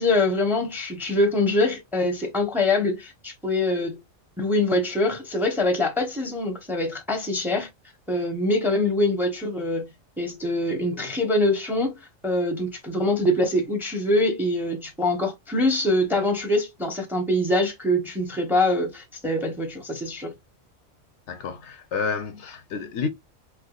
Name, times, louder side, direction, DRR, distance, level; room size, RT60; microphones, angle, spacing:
voice 1, 0.0-4.0 4.4-7.7 8.1-9.9 10.2-11.9 12.2-20.3, left 1 dB, ahead, 0.6 m, -24 dB
voice 2, 21.3-23.1, left 5 dB, 70° left, 0.8 m, -30 dB
3.5 x 3.0 x 2.3 m
omnidirectional pair, 1.3 m